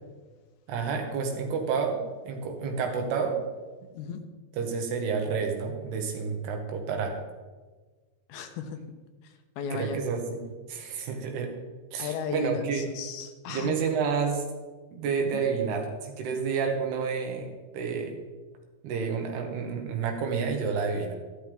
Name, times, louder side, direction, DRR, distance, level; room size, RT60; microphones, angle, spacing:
voice 1, 0.7-2.0 2.3-3.4 4.5-7.2 9.7-10.4 10.7-11.5 11.9-12.8 13.5-14.4 14.9-18.2 18.8-21.2, right 5 dB, 80° right, 3 dB, 3.4 m, -29 dB
voice 2, 8.3-8.8 9.6-10.0 12.0-13.8 15.3-15.4, left 6 dB, 75° left, 6 dB, 2.7 m, -35 dB
13.5 x 12.5 x 3.5 m, 1.3 s
omnidirectional pair, 4.6 m